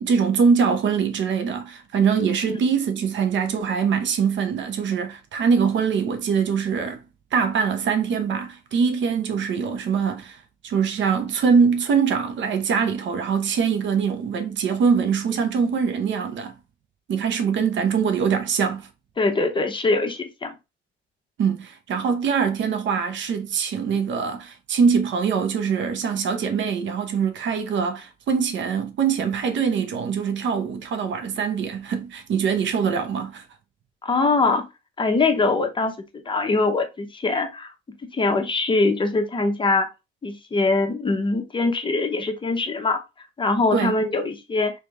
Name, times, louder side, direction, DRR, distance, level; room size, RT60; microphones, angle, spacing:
voice 1, 0.0-7.0 7.3-16.5 17.1-18.9 21.4-33.4 43.7-43.9, right 6 dB, 70° right, 0.9 m, -23 dB
voice 2, 19.2-20.5 34.0-34.6 35.0-37.7 38.1-39.9 40.2-44.7, left 3 dB, 25° left, 0.9 m, -23 dB
3.3 x 3.1 x 3.4 m
cardioid pair, 90°, 20 cm